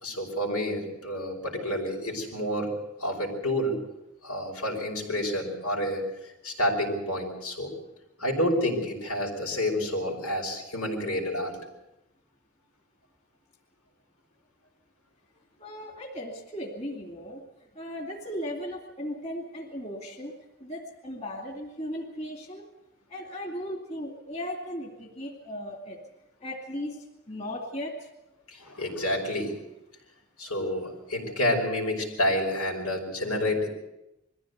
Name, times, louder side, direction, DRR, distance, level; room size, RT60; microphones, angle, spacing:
voice 1, 0.0-2.7 3.0-3.8 4.2-6.0 6.4-7.7 8.2-11.5 28.6-29.6 30.4-33.7, left 1 dB, 85° left, 0 dB, 5.5 m, -29 dB
voice 2, 15.6-17.4 17.7-20.3 20.6-22.7 23.1-26.0 26.4-28.1, equal, 30° left, 1 dB, 2.6 m, -37 dB
22.0 x 15.0 x 8.2 m, 0.93 s
head